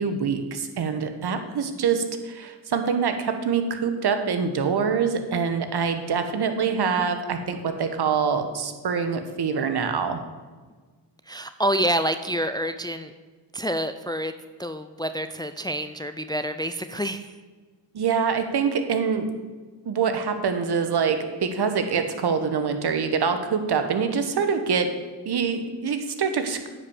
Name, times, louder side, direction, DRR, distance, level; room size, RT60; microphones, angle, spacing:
voice 1, 0.0-10.2 17.9-19.3 19.9-24.9 25.2-26.8, right 6 dB, 60° right, 8 dB, 1.2 m, -25 dB
voice 2, 11.3-13.1 13.5-14.3 14.6-17.3, right 1 dB, 10° left, 10 dB, 0.4 m, -27 dB
9.7 x 5.4 x 7.1 m, 1.4 s
cardioid pair, 65°, 44 cm